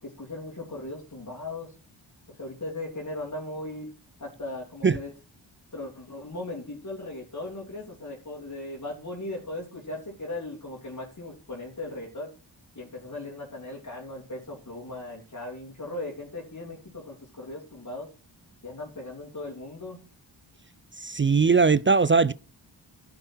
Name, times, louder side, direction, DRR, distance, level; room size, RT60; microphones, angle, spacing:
voice 1, 0.0-1.7 2.3-3.9 4.2-5.1 5.7-12.3 12.7-18.1 18.6-20.0, left 2 dB, 40° left, 3.1 m, -38 dB
voice 2, 21.0-22.3, right 4 dB, 25° right, 0.4 m, -20 dB
11.5 x 7.8 x 4.6 m
cardioid pair, 40°, 48 cm